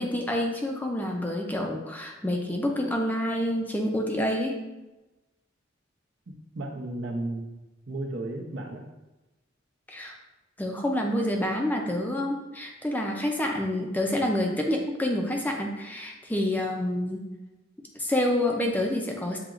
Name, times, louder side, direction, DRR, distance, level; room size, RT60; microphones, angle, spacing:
voice 1, 0.0-4.6 9.9-10.2 10.6-17.2 17.9-19.4, left 1 dB, 10° left, 1 dB, 0.4 m, -28 dB
voice 2, 6.5-7.5 7.9-8.9, right 2 dB, 65° right, 2 dB, 0.7 m, -33 dB
7.2 x 2.9 x 2.4 m, 1.1 s
head